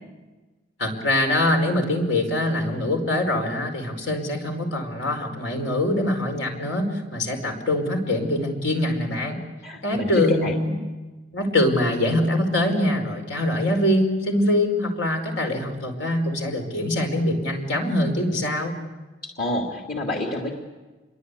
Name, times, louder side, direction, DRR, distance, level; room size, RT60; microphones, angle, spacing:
voice 1, 0.8-9.4 9.8-10.7 11.3-18.7, left 1 dB, 80° left, 4 dB, 5.0 m, -23 dB
voice 2, 9.6-10.5 19.2-20.5, left 1 dB, 50° left, 0 dB, 2.7 m, -28 dB
27.0 x 23.0 x 8.4 m, 1.2 s
head